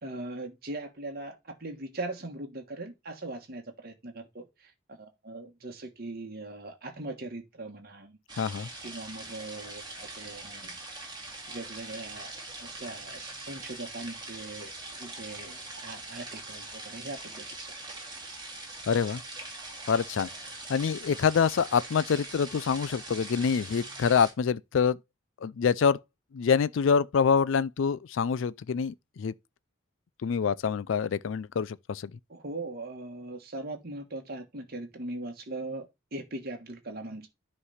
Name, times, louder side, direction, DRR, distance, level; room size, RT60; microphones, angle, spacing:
voice 1, 0.0-8.2 8.8-10.8 11.5-12.3 12.6-14.7 15.0-17.8 21.1-21.2 32.3-37.3, right 2 dB, 50° right, 1.4 m, -40 dB
sound 1, 8.3-24.3, right 2 dB, 25° right, 2.5 m, -42 dB
voice 2, 8.4-8.7 18.9-19.2 19.9-20.3 20.7-25.0 25.4-26.0 26.3-29.3 30.2-32.1, left 6 dB, 70° left, 0.4 m, -26 dB
9.7 x 3.3 x 5.6 m
head